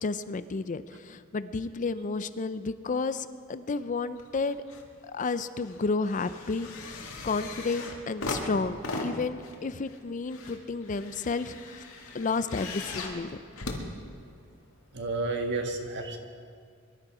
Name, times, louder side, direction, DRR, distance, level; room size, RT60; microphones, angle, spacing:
voice 1, 0.0-4.6 5.0-11.8 12.1-13.3, left 4 dB, 40° left, 13 dB, 0.5 m, -32 dB
sound 1, 4.2-4.9 5.2-14.6 15.4-15.5, left 2 dB, 80° left, 2.0 m, -39 dB
voice 2, 14.9-16.2, right 3 dB, 55° right, 4 dB, 1.6 m, -31 dB
23.0 x 12.0 x 4.9 m, 2.1 s
head